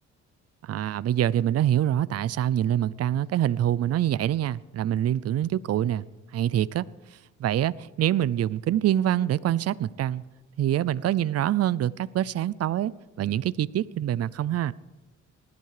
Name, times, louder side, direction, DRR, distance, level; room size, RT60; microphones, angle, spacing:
voice 1, 0.6-6.0 6.3-6.9 7.1-10.2 10.6-12.9 13.2-14.7, right 11 dB, 55° right, 0.6 m, -25 dB
19.5 x 12.5 x 4.9 m
cardioid pair, 90°, 30 cm